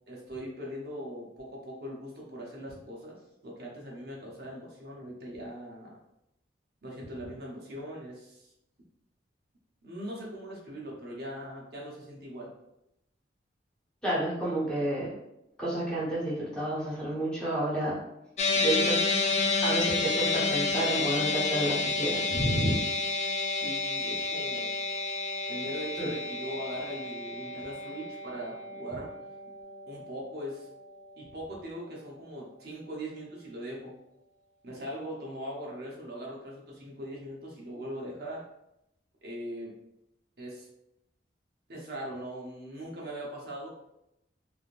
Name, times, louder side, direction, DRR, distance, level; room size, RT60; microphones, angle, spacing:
voice 1, 0.1-6.0 6.8-8.5 9.8-12.5 23.6-24.7 25.5-29.1 29.9-30.7 31.2-33.9 34.6-38.4 39.2-39.8 40.4-40.7 41.7-43.7, equal, 60° right, -4 dB, 0.9 m, -40 dB
voice 2, 14.0-15.1 15.6-18.0 18.6-19.0 19.6-22.8 26.0-26.1, right 1 dB, 5° left, -9 dB, 1.3 m, -30 dB
sound 1, 18.4-30.8, left 3 dB, 40° left, 0.3 m, -30 dB
3.6 x 2.5 x 2.5 m, 0.84 s
head